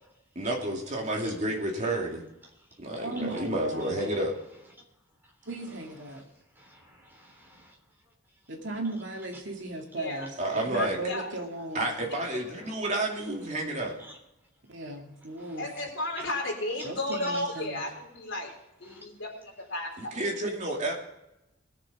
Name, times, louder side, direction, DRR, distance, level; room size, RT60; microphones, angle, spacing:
voice 1, 0.3-2.2 2.8-4.3 10.4-11.0 11.7-13.9 20.0-20.9, right 1 dB, 35° right, 0 dB, 2.6 m, -30 dB
voice 2, 2.4-2.8 3.2-3.3 3.8-4.3 5.2-6.3 6.5-8.5 8.8-8.9 12.6-12.7 13.4-14.2 15.4-15.8 16.2-16.4 16.8-17.9 18.8-19.1, right 2 dB, 10° right, 0 dB, 3.5 m, -49 dB
voice 3, 3.0-4.1 5.5-6.2 8.5-11.9 14.7-15.7 16.8-17.8, right 2 dB, 65° right, 2 dB, 2.4 m, -36 dB
voice 4, 10.0-10.3 10.7-11.3 12.1-12.6 15.6-18.5 18.8-20.1, left 1 dB, 65° left, 0 dB, 4.0 m, -34 dB
20.0 x 7.1 x 5.3 m, 0.90 s
head